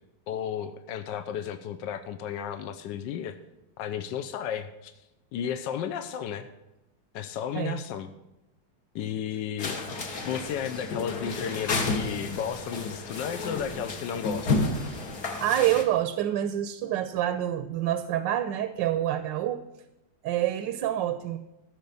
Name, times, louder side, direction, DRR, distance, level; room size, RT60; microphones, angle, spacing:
voice 1, 0.3-3.4 3.8-4.9 5.3-6.5 7.1-8.1 8.9-14.6, left 8 dB, 80° left, 9 dB, 1.3 m, -33 dB
sound 1, 9.6-15.8, left 3 dB, 60° left, 1.9 m, -31 dB
voice 2, 15.4-19.6 20.2-21.4, right 12 dB, 80° right, 10 dB, 1.3 m, -27 dB
14.5 x 5.9 x 7.0 m, 0.96 s
omnidirectional pair, 2.0 m